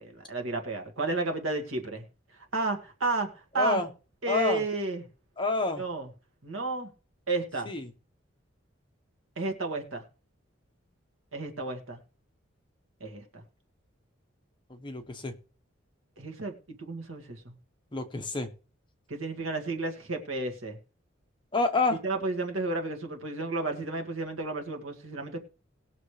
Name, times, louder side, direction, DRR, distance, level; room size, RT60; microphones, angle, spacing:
voice 1, 0.0-2.0 2.5-3.8 4.2-5.1 5.8-6.1 6.4-6.9 7.3-7.7 9.4-10.0 11.3-12.0 13.0-13.4 16.2-17.5 19.1-20.8 22.0-25.4, right 2 dB, 80° right, 4 dB, 2.0 m, -32 dB
voice 2, 3.6-3.9 4.3-4.6 5.4-5.8 7.7-7.8 14.7-15.3 17.9-18.5 21.5-22.0, left 3 dB, 25° left, 6 dB, 1.1 m, -28 dB
19.0 x 6.7 x 3.3 m, 0.36 s
head